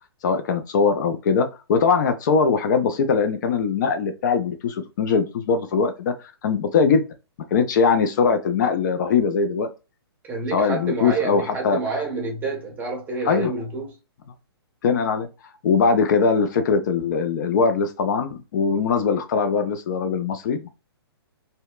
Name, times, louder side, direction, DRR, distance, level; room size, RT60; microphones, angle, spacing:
voice 1, 0.2-6.1 6.4-7.0 7.5-9.7 10.5-11.8 13.3-13.5 14.8-15.3 15.6-20.7, left 5 dB, 45° left, 0.4 m, -21 dB
voice 2, 10.3-13.9, right 3 dB, 10° right, 0.7 m, -28 dB
2.7 x 2.1 x 2.2 m
hypercardioid pair, 145°, 14 cm